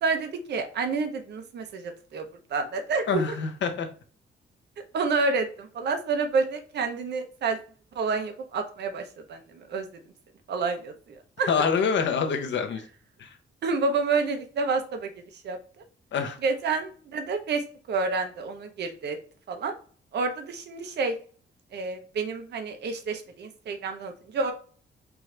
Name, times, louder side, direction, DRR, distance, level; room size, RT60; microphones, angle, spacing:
voice 1, 0.0-2.2 2.5-3.4 4.9-7.6 8.0-9.0 9.3-9.9 10.5-11.5 13.6-15.1 15.4-15.8 16.4-17.6 17.9-19.2 19.5-19.7 20.1-21.1 21.7-24.5, right 4 dB, 60° right, 5 dB, 0.7 m, -29 dB
voice 2, 3.1-3.9 11.5-12.8 13.2-13.3 16.1-16.4, left 6 dB, 65° left, 5 dB, 0.9 m, -26 dB
4.6 x 2.6 x 3.2 m, 0.43 s
cardioid pair, 130°, 20 cm